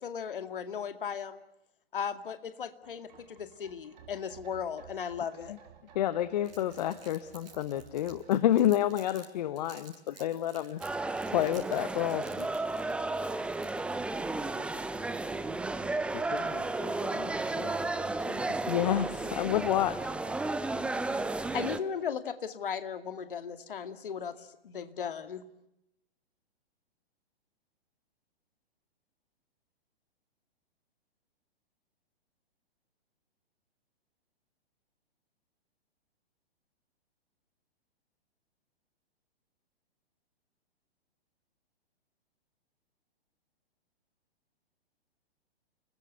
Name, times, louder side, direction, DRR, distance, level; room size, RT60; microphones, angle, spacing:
voice 1, 0.0-1.4 1.9-5.6 21.5-24.4 24.6-25.4, left 7 dB, 55° left, 10 dB, 2.4 m, -36 dB
sound 1, 2.8-10.2 10.5-10.6, right 8 dB, 45° right, 4.4 m, -56 dB
voice 2, 5.9-10.8 11.3-12.6 18.7-20.3, left 12 dB, 40° left, 15 dB, 1.3 m, -29 dB
Crumpling crinkling, 6.4-9.3 9.6-14.0, right 5 dB, 65° right, 6.6 m, -54 dB
sound 2, 10.8-21.8, right 2 dB, 5° right, 1.0 m, -33 dB
voice 3, 16.1-18.5, left 12 dB, 25° left, 14 dB, 1.4 m, -45 dB
29.5 x 21.0 x 8.0 m, 0.85 s
figure-of-eight pair, 115°, 31 cm